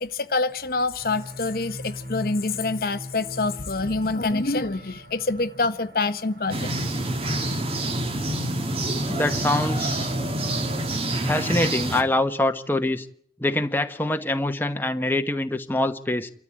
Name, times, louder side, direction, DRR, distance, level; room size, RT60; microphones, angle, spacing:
voice 1, 0.0-6.7, left 3 dB, 55° left, 0.8 m, -26 dB
sound 1, 1.0-9.2, left 1 dB, 70° right, 4.7 m, -42 dB
sound 2, 6.5-12.0, right 1 dB, 35° right, 1.9 m, -27 dB
voice 2, 9.1-10.1 11.2-13.1 13.4-16.3, left 1 dB, 10° left, 1.1 m, -24 dB
28.0 x 13.5 x 8.6 m
head